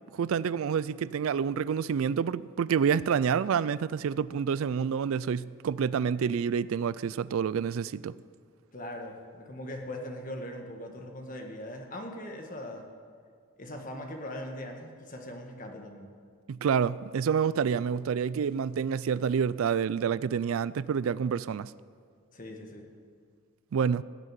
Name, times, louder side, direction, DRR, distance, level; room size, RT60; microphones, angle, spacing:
voice 1, 0.1-8.1 16.5-21.7 23.7-24.0, right 7 dB, 70° right, 0.3 m, -28 dB
voice 2, 8.7-12.9 13.6-16.1 22.3-22.8, left 1 dB, 40° left, 1.7 m, -40 dB
17.5 x 6.5 x 9.0 m
head